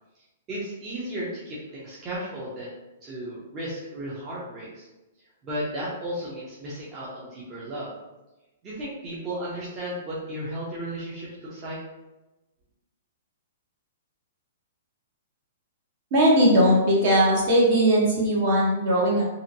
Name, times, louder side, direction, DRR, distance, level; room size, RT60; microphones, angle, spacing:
voice 1, 0.5-2.7 3.0-4.9 5.4-7.9 8.6-11.8, right 1 dB, 25° right, -7 dB, 0.7 m, -34 dB
voice 2, 16.1-19.2, equal, 50° right, -4 dB, 1.0 m, -19 dB
2.8 x 2.6 x 2.6 m, 1.0 s
hypercardioid pair, 150°, 0 cm